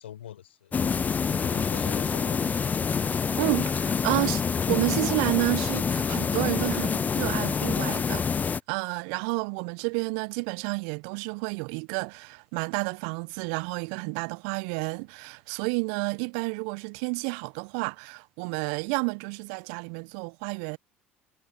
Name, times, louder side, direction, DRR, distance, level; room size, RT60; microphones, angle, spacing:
voice 1, 0.0-2.5, left 11 dB, 80° left, 4.3 m, -44 dB
sound 1, 0.7-8.6, left 6 dB, 25° left, 0.5 m, -27 dB
voice 2, 3.4-20.8, right 34 dB, 65° right, 0.7 m, -30 dB
figure-of-eight pair, 65°, 6 cm